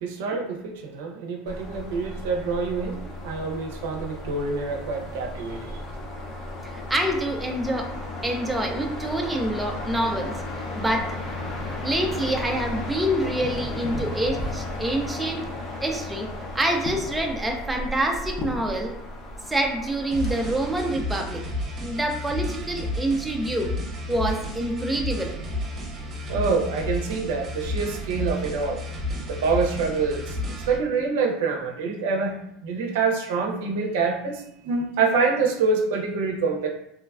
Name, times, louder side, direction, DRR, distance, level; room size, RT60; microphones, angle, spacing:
voice 1, 0.0-5.8 26.3-28.8 29.3-32.4 32.6-36.7, right 4 dB, 80° right, 1 dB, 0.5 m, -26 dB
sound 1, 1.5-20.9, left 1 dB, 45° left, 0.6 m, -34 dB
voice 2, 6.6-7.9 8.2-10.4 10.8-11.1 11.8-15.4 15.8-16.3 16.5-18.9 19.5-21.4 21.8-23.7 24.1-25.3, right 1 dB, 5° right, 1 dB, 0.4 m, -26 dB
sound 2, 20.1-30.8, left 1 dB, 35° right, 0.8 m, -32 dB
3.0 x 2.2 x 2.3 m, 0.78 s
supercardioid pair, 125°, 0 cm